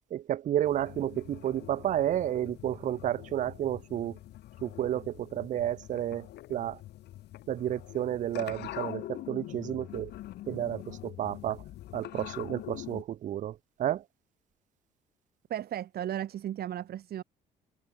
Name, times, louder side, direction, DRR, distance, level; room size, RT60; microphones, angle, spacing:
voice 1, 0.1-4.1 4.6-6.8 7.5-10.1 10.5-11.6 11.9-14.0, right 11 dB, 45° right, 0.5 m, -31 dB
sound 1, 0.6-13.0, left 15 dB, 75° left, 1.9 m, -44 dB
voice 2, 15.5-17.2, right 11 dB, 60° right, 4.1 m, -35 dB
supercardioid pair, 85°, 18 cm